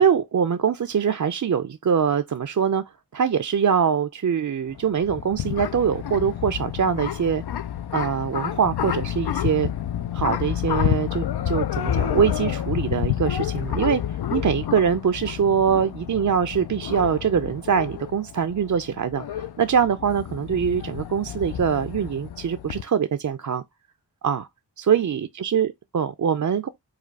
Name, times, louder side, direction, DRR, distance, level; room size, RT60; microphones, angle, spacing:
voice 1, 0.0-2.8 3.1-7.4 7.9-9.7 10.1-14.0 14.3-23.6 24.2-24.5 24.9-26.7, right 7 dB, 45° right, 0.5 m, -23 dB
sound 1, 4.7-22.8, left 10 dB, 70° left, 0.5 m, -29 dB
4.9 x 2.3 x 4.5 m
wide cardioid pair, 70°, 40 cm